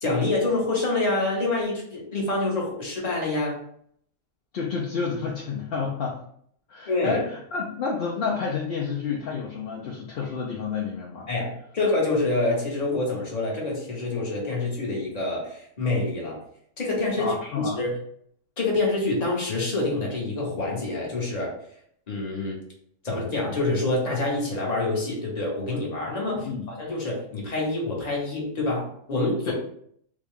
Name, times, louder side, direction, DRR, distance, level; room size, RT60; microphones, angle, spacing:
voice 1, 0.0-3.6 6.9-7.2 11.3-16.4 16.8-18.0 18.6-21.6 22.1-22.6 23.0-29.5, left 2 dB, 35° left, -3 dB, 1.0 m, -26 dB
voice 2, 4.5-6.2 6.7-11.3 17.2-17.8 26.3-26.7 29.5-29.6, left 5 dB, 60° left, -2 dB, 0.6 m, -30 dB
3.5 x 2.2 x 3.6 m, 0.66 s
omnidirectional pair, 1.4 m